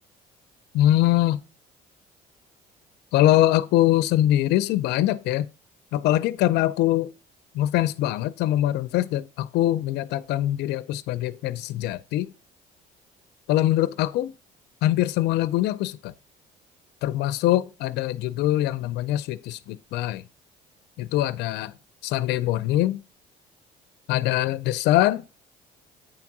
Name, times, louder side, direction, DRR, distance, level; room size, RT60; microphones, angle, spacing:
voice 1, 0.7-1.4 3.1-5.5 5.9-7.1 7.5-12.3 13.5-14.3 14.8-16.1 17.0-20.2 21.0-21.7 22.0-23.0 24.1-25.2, left 14 dB, 80° left, 0.5 m, -23 dB
8.9 x 3.6 x 5.9 m
cardioid pair, 110°, 17 cm